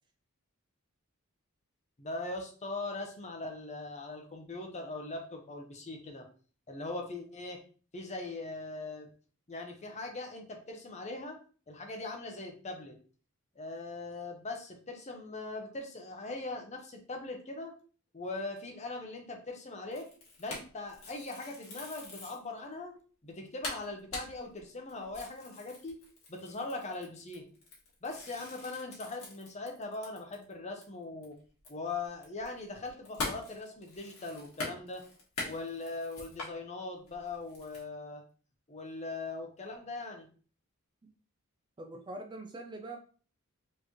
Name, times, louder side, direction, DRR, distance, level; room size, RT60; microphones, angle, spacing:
voice 1, 2.0-6.3 6.7-7.6 7.9-9.1 9.5-11.4 11.7-13.0 13.6-17.8 18.1-20.1 20.4-22.9 23.2-26.0 26.3-27.5 28.0-31.4 31.7-35.0 35.5-38.2 38.7-40.3, left 2 dB, 30° left, 3 dB, 0.7 m, -40 dB
sound 1, 19.9-22.5 23.0-23.1 23.3-23.4 23.6-30.5 30.8-30.9 31.2-36.5 37.1-37.8, left 3 dB, 65° left, 1.7 m, -43 dB
voice 2, 41.8-43.0, right 2 dB, 20° right, 3 dB, 0.4 m, -43 dB
4.4 x 3.2 x 3.0 m, 0.40 s
head